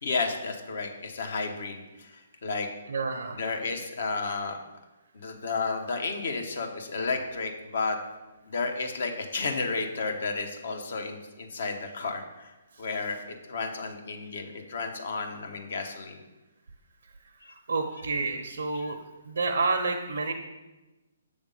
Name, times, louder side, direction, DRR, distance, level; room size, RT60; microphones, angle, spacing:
voice 1, 0.0-2.7 3.3-4.6 5.1-8.0 8.5-12.5 12.8-13.2 13.5-16.2 17.4-17.5 17.9-18.0 18.7-19.0, left 4 dB, 65° left, 4 dB, 1.0 m, -32 dB
voice 2, 2.9-3.5 17.7-19.0 19.3-20.3, right 3 dB, 80° right, 3 dB, 0.6 m, -29 dB
7.2 x 3.5 x 5.4 m, 1.1 s
hypercardioid pair, 145°, 0 cm